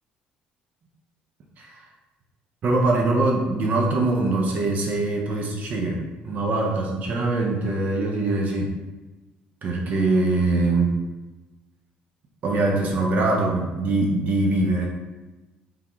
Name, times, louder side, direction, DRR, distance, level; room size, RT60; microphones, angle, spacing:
voice 1, 2.6-8.7 9.6-10.9 12.4-14.9, right 2 dB, 55° right, 0 dB, 0.7 m, -23 dB
3.7 x 3.4 x 3.0 m, 1.1 s
cardioid pair, 100°, 3 cm